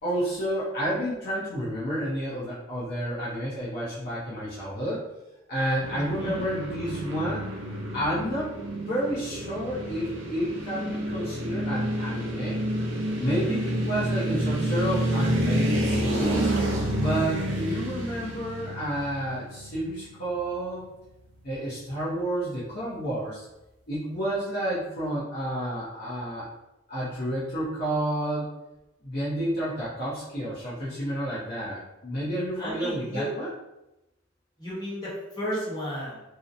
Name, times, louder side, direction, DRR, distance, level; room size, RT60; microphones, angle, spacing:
voice 1, 0.0-5.0 5.5-7.5 7.9-12.6 13.2-16.5 17.0-20.8 21.4-23.5 23.9-26.5 26.9-28.5 29.0-33.5, equal, 45° left, -8 dB, 0.6 m, -30 dB
sound 1, 5.8-20.0, right 1 dB, 70° right, 0.6 m, -29 dB
voice 2, 6.0-6.4 32.6-33.3 34.6-36.2, equal, 20° left, -8 dB, 0.9 m, -33 dB
2.7 x 2.0 x 2.5 m, 0.93 s
head